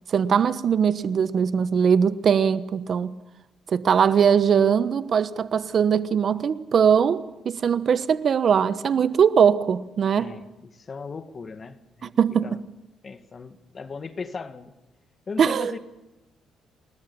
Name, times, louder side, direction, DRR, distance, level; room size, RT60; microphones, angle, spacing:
voice 1, 0.1-3.2 3.7-10.3 12.0-12.6 15.4-15.7, right 7 dB, 55° right, 1.2 m, -21 dB
voice 2, 10.2-12.2 12.4-12.6 13.0-14.7 15.3-15.8, left 4 dB, 40° left, 2.0 m, -37 dB
29.0 x 20.0 x 7.1 m
cardioid pair, 90°, 0 cm